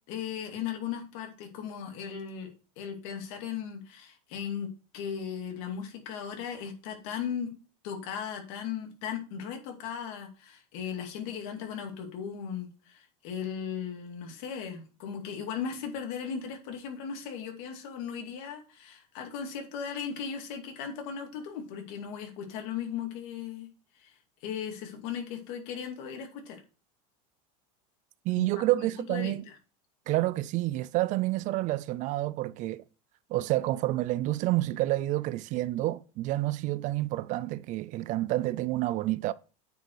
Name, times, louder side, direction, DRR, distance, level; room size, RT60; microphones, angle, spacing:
voice 1, 0.1-7.5 7.8-23.7 24.0-24.1 24.4-26.6 28.4-28.5 29.1-29.6, left 7 dB, 65° left, 2.4 m, -37 dB
voice 2, 28.3-29.4 30.1-32.8 33.3-39.3, right 17 dB, 40° right, 0.4 m, -29 dB
9.1 x 5.2 x 4.7 m
supercardioid pair, 145°, 19 cm